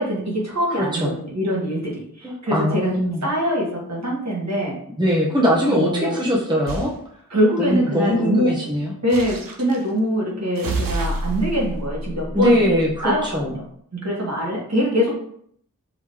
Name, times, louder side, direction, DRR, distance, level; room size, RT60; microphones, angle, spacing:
voice 1, 0.0-4.7 5.7-6.2 7.3-8.5 9.0-13.6 13.9-15.1, equal, 50° right, -3 dB, 1.7 m, -23 dB
voice 2, 0.7-1.1 2.2-3.2 5.0-6.9 7.6-8.9 12.3-13.6, equal, 15° right, -3 dB, 0.9 m, -21 dB
sound 1, 6.7-7.0 9.1-9.8 10.6-13.2, right 2 dB, 80° right, 0.7 m, -29 dB
4.7 x 3.0 x 3.7 m, 0.65 s
wide cardioid pair, 60°, 34 cm